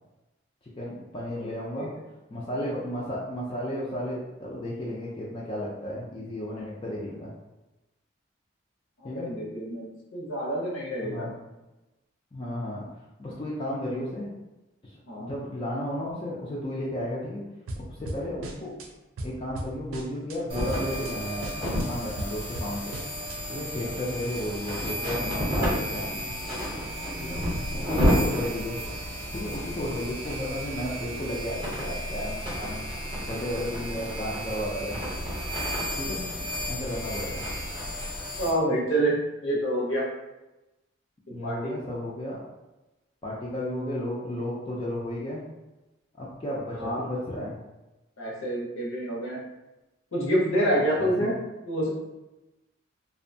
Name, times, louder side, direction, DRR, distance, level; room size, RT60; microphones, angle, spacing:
voice 1, 0.8-1.9 2.3-7.3 9.0-9.3 11.0-11.3 12.3-12.9 13.2-14.3 15.2-17.4 17.9-18.7 19.2-23.0 23.5-26.3 27.2-27.4 27.9-28.8 29.3-32.8 33.2-35.0 35.9-36.2 36.7-37.4 41.3-42.4 43.2-45.5 46.2-47.6 51.0-51.3, left 1 dB, 25° left, -6 dB, 0.3 m, -33 dB
voice 2, 1.4-1.9 9.0-11.3 15.1-15.3 38.4-40.1 41.4-41.7 46.7-47.1 48.2-49.4 50.1-51.4 51.7-51.9, right 1 dB, 75° left, -4 dB, 0.7 m, -27 dB
sound 1, 17.7-18.9 19.2-20.4 20.7-21.1 21.4-23.4, right 1 dB, 80° right, 0.4 m, -37 dB
sound 2, 20.5-38.5, equal, 25° right, 0.7 m, -31 dB
2.6 x 2.1 x 2.6 m, 1.0 s
head